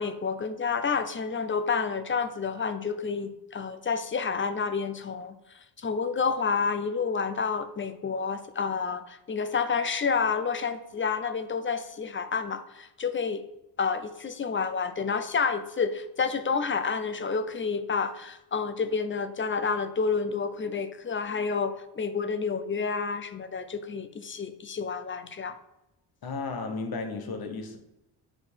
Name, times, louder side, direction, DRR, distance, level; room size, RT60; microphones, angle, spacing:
voice 1, 0.0-5.4 5.8-13.4 13.8-25.6, left 5 dB, 25° left, 0.5 m, -29 dB
voice 2, 26.2-27.8, left 4 dB, 50° left, 1.1 m, -34 dB
7.5 x 4.5 x 4.4 m
cardioid pair, 130°, 47 cm